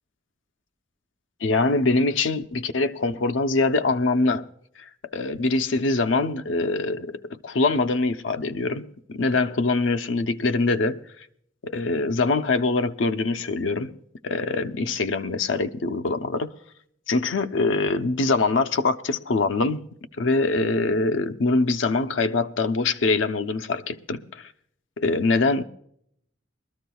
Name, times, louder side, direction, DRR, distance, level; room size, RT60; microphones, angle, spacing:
voice 1, 1.4-4.5 4.8-11.1 11.6-14.0 14.2-16.5 17.1-19.9 20.2-24.5 25.0-25.6, left 3 dB, 80° left, 0.6 m, -24 dB
22.5 x 13.5 x 2.3 m
head